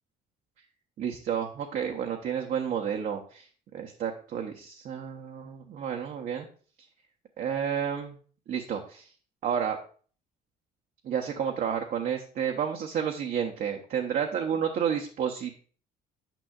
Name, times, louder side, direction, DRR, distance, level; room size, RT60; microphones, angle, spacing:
voice 1, 1.0-3.4 3.7-6.5 7.4-8.1 8.5-9.1 9.4-9.8 11.0-15.6, right 8 dB, 55° right, 2 dB, 0.8 m, -31 dB
9.0 x 5.5 x 2.4 m, 0.42 s
cardioid pair, 110°, 17 cm